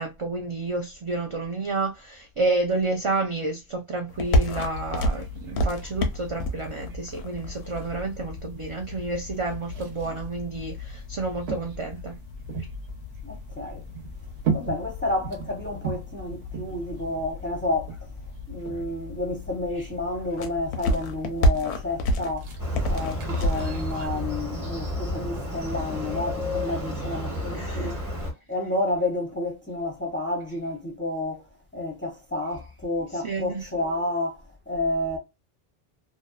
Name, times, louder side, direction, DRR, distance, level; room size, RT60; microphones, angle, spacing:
voice 1, 0.0-12.2 19.8-19.9 27.5-27.9 28.2-28.3 33.2-33.7, right 3 dB, 50° right, 0.3 m, -30 dB
sound 1, 4.1-23.9, equal, 90° left, 0.9 m, -31 dB
sound 2, 4.3-24.1, right 1 dB, 80° right, 1.0 m, -38 dB
voice 2, 13.2-13.8 14.5-18.1 18.5-28.0 28.5-35.2, left 2 dB, 15° left, 0.5 m, -30 dB
Motorcycle, 22.6-28.3, left 1 dB, 20° right, 1.0 m, -31 dB
2.6 x 2.1 x 2.2 m
omnidirectional pair, 1.1 m